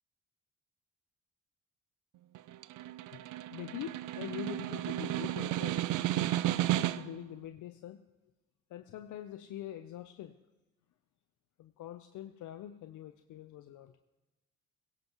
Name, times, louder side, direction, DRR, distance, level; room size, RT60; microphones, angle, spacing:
Snare drum, 2.3-7.3, right 14 dB, 80° right, 0.5 m, -33 dB
voice 1, 3.5-6.1 6.6-8.1 8.7-10.3 11.6-14.0, left 12 dB, 75° left, 8 dB, 0.7 m, -44 dB
17.0 x 16.5 x 3.0 m, 1.1 s
cardioid pair, 90°, 30 cm